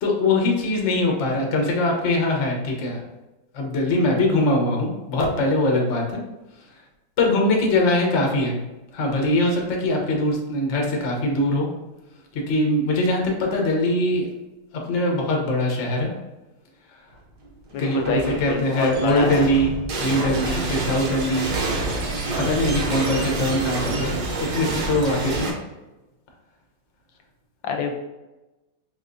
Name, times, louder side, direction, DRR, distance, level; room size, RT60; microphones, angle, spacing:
voice 1, 0.0-3.0 3.5-6.2 7.2-8.6 8.9-11.7 12.3-14.3 14.7-16.1 17.8-19.7 20.0-21.5 22.4-25.5, left 1 dB, 50° left, 0 dB, 0.9 m, -22 dB
voice 2, 17.7-19.5 27.6-27.9, left 5 dB, 80° left, 3 dB, 1.2 m, -27 dB
sound 1, 17.7-25.5, right 2 dB, 65° right, 1.3 m, -27 dB
4.8 x 3.4 x 2.5 m, 1.1 s
omnidirectional pair, 2.1 m